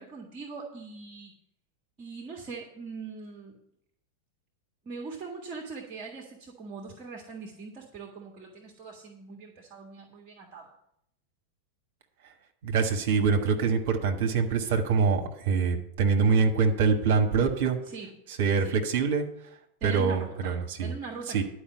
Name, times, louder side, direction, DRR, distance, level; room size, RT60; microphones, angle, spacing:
voice 1, 0.0-1.4 2.0-3.6 4.8-10.7 17.8-18.1 18.6-18.7 19.8-21.4, right 4 dB, 30° right, 0 dB, 1.7 m, -41 dB
voice 2, 12.6-17.8 18.4-19.3 19.8-20.9 21.3-21.4, right 5 dB, 50° right, 5 dB, 1.4 m, -24 dB
11.0 x 5.0 x 8.0 m, 0.74 s
figure-of-eight pair, 90°, 0 cm